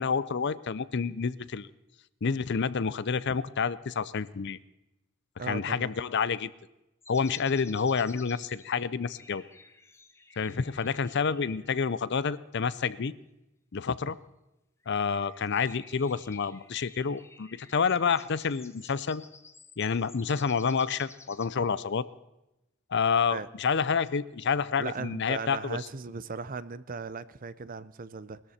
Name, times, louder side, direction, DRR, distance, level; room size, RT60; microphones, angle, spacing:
voice 1, 0.0-1.7 2.2-4.6 5.5-6.5 7.1-9.4 10.4-13.1 13.7-14.2 14.9-19.2 19.8-22.1 22.9-25.8, left 5 dB, 50° left, 18 dB, 0.5 m, -28 dB
voice 2, 5.4-5.9 23.3-23.5 24.8-28.4, right 4 dB, 40° right, 17 dB, 0.5 m, -37 dB
sound 1, 7.0-12.0 14.8-21.5, left 4 dB, 10° left, 0.7 m, -53 dB
20.5 x 13.5 x 4.3 m, 0.92 s
head